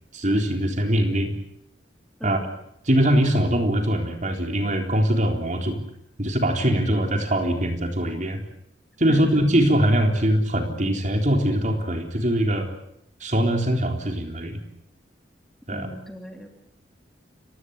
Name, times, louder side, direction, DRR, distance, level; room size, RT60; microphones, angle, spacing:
voice 1, 0.1-1.3 2.2-2.4 2.9-5.8 6.2-8.4 9.0-12.7 13.2-14.6 15.7-15.9, equal, 40° right, 4 dB, 3.9 m, -22 dB
voice 2, 15.7-16.5, equal, 5° left, 3 dB, 3.1 m, -37 dB
29.5 x 17.0 x 8.2 m, 0.74 s
head